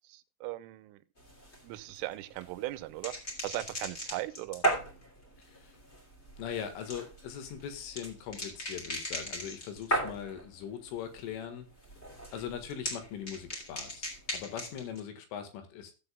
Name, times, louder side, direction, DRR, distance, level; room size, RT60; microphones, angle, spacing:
voice 1, 0.1-1.0 1.6-3.1 3.4-4.6, right 17 dB, 85° right, 3.1 m, -38 dB
sound 1, 1.2-10.4 10.8-11.3 11.6-15.0, right 1 dB, 20° left, 1.8 m, -37 dB
voice 2, 5.4-5.8 6.4-11.7 12.3-15.9, left 8 dB, 75° left, 4.0 m, -41 dB
15.5 x 7.8 x 2.3 m
omnidirectional pair, 5.9 m